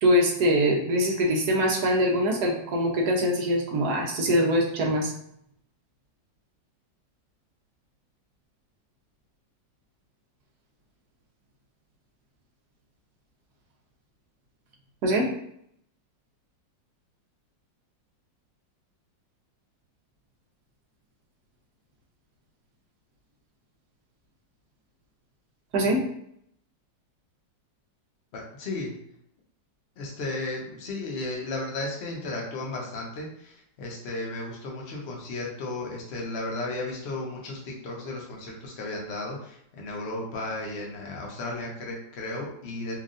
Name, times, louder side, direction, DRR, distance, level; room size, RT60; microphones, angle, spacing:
voice 1, 0.0-5.1 15.0-15.3 25.7-26.0, equal, 60° right, -1 dB, 1.2 m, -23 dB
voice 2, 28.3-28.9 30.0-43.0, left 2 dB, 50° left, -1 dB, 0.8 m, -34 dB
4.5 x 2.5 x 2.5 m, 0.71 s
omnidirectional pair, 2.0 m